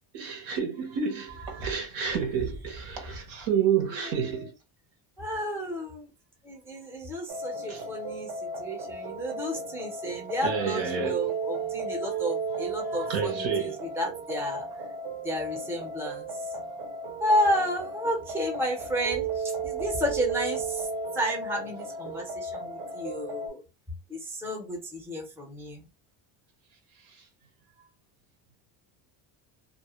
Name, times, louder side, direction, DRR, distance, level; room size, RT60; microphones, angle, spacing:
voice 1, 0.1-4.5 7.7-7.9 10.4-11.3 12.6-13.8, right 7 dB, 70° right, 1.0 m, -30 dB
voice 2, 5.2-6.1 6.4-8.3 8.6-13.5 14.0-14.7 15.2-16.3 17.2-20.7 21.1-23.6 24.1-25.8, equal, 5° right, 0.5 m, -31 dB
sound 1, 7.3-23.5, right 3 dB, 45° right, 0.7 m, -34 dB
2.4 x 2.0 x 2.9 m
cardioid pair, 140°, 47 cm